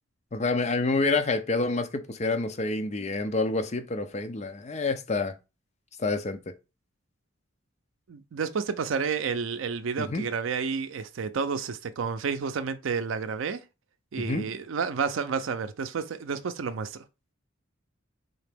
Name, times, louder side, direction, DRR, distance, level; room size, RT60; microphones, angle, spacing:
voice 1, 0.3-5.4 6.0-6.4 10.0-10.2 14.2-14.5, left 3 dB, 35° left, 0.5 m, -28 dB
voice 2, 8.1-13.6 14.1-17.0, right 5 dB, 75° right, 0.4 m, -30 dB
4.0 x 2.9 x 3.4 m
head